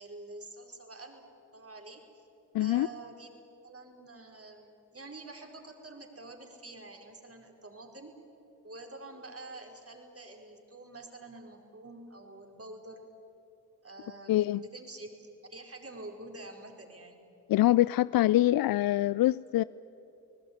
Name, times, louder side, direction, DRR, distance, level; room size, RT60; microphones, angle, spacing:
voice 1, 0.0-2.0 2.5-8.2 8.6-13.0 13.8-17.2, right 2 dB, 35° right, 3 dB, 4.8 m, -47 dB
voice 2, 2.5-2.9 14.3-14.6 17.5-19.6, left 15 dB, 55° left, 19 dB, 0.5 m, -24 dB
29.5 x 19.0 x 9.6 m, 2.8 s
hypercardioid pair, 40°, 42 cm